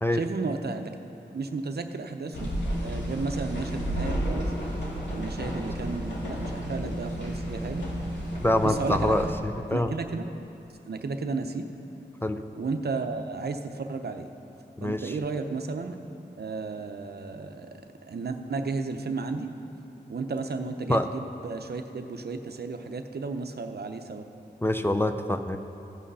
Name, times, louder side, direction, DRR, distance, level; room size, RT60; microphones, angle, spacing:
voice 1, 0.1-1.0 1.3-2.5 2.8-4.5 5.1-7.9 8.6-9.3 9.7-10.3 10.8-11.7 12.6-14.3 14.8-16.0 16.4-19.5 20.1-24.2, right 4 dB, 60° right, 6 dB, 0.7 m, -33 dB
sound 1, 2.3-9.3, equal, 80° left, 2.2 m, -32 dB
voice 2, 8.4-9.9 12.2-12.4 14.8-15.2 20.9-21.1 24.6-25.6, left 1 dB, 10° left, 7 dB, 0.5 m, -25 dB
15.5 x 6.3 x 5.5 m, 2.9 s
wide cardioid pair, 60°, 18 cm